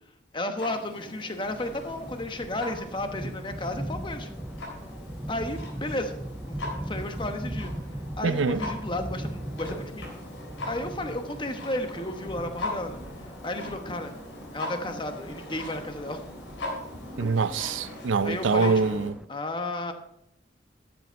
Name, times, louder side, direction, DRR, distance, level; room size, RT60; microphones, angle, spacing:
voice 1, 0.3-4.3 5.3-6.2 6.5-7.7 8.2-10.1 10.6-13.0 13.4-14.1 14.5-16.2 18.2-19.9, left 1 dB, 25° left, 1.0 m, -33 dB
Clock, 0.6-19.1, left 1 dB, 85° left, 3.7 m, -40 dB
sound 1, 1.4-19.2, right 1 dB, 5° right, 0.3 m, -40 dB
voice 2, 8.2-8.6 17.2-19.1, right 4 dB, 85° right, 0.5 m, -24 dB
13.5 x 7.5 x 4.5 m
head